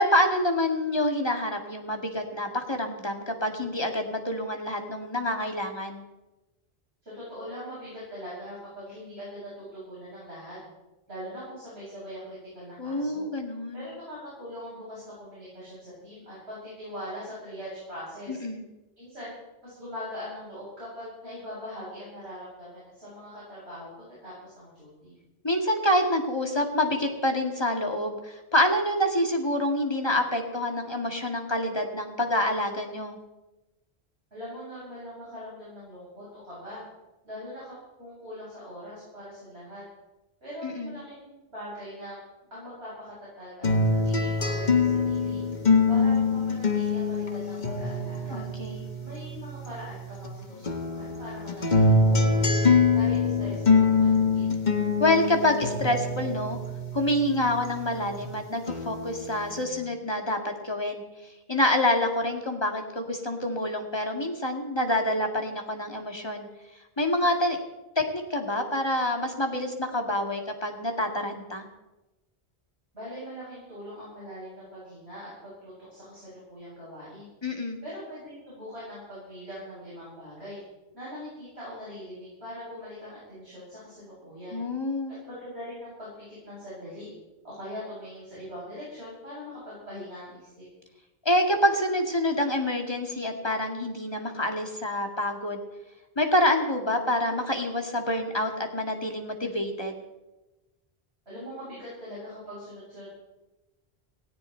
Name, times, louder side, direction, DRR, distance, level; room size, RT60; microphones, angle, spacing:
voice 1, 0.0-6.0 12.8-13.8 18.3-18.6 25.4-33.2 40.6-40.9 48.3-48.8 55.0-56.6 56.9-61.0 61.5-66.5 67.0-67.6 68.0-71.7 77.4-77.8 84.5-85.1 91.3-95.6 96.2-100.0, left 1 dB, 25° left, 3 dB, 2.1 m, -27 dB
voice 2, 7.0-10.6 11.1-13.3 13.7-18.4 19.0-19.3 19.6-23.9 24.2-25.1 34.3-36.8 37.2-39.8 40.4-42.2 42.5-45.4 45.9-48.4 49.0-52.5 52.9-54.5 72.9-77.3 77.8-80.6 80.9-84.6 85.2-87.1 87.4-90.7 101.2-103.1, equal, 85° right, -9 dB, 8.4 m, -41 dB
sound 1, 43.6-50.3 50.7-58.3 58.7-59.6, left 3 dB, 45° left, 1.5 m, -25 dB
18.0 x 17.5 x 4.5 m, 1.1 s
omnidirectional pair, 1.1 m